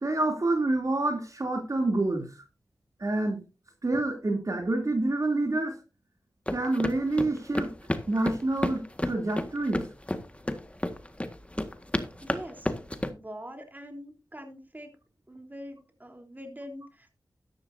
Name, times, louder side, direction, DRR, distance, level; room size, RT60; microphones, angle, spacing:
voice 1, 0.0-2.3 3.0-3.4 3.8-5.8 6.5-7.7 8.1-9.8, right 2 dB, 45° right, 3 dB, 2.9 m, -27 dB
sound 1, 6.5-13.1, left 1 dB, 15° left, 1.7 m, -31 dB
voice 2, 12.2-12.7 13.1-14.9 15.3-17.1, equal, 25° right, 5 dB, 3.5 m, -43 dB
13.5 x 11.0 x 2.7 m, 0.30 s
cardioid pair, 45°, 8 cm